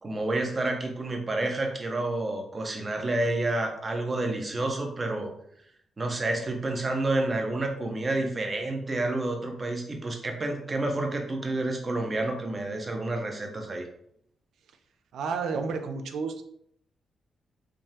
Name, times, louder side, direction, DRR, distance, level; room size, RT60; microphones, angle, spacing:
voice 1, 0.0-5.3 6.0-13.8, right 2 dB, 30° right, 3 dB, 0.6 m, -29 dB
voice 2, 15.1-16.4, right 5 dB, 80° right, 6 dB, 0.3 m, -31 dB
3.4 x 2.0 x 2.7 m, 0.69 s
cardioid pair, 95°, 0 cm